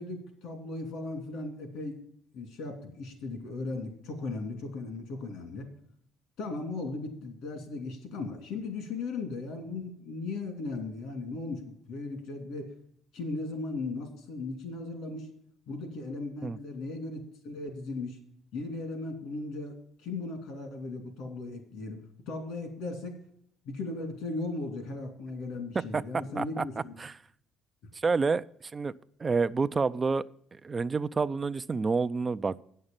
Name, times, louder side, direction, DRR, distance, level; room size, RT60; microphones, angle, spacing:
voice 1, 0.0-2.0 2.3-5.7 6.4-12.7 13.1-15.3 15.7-18.2 18.5-19.7 20.0-23.2 23.6-26.9, left 3 dB, 80° left, 5 dB, 2.6 m, -37 dB
voice 2, 26.4-27.1 27.9-28.9 29.2-30.2 30.5-32.6, right 4 dB, 30° right, 14 dB, 0.3 m, -29 dB
8.8 x 6.6 x 7.2 m, 0.66 s
supercardioid pair, 85°, 0 cm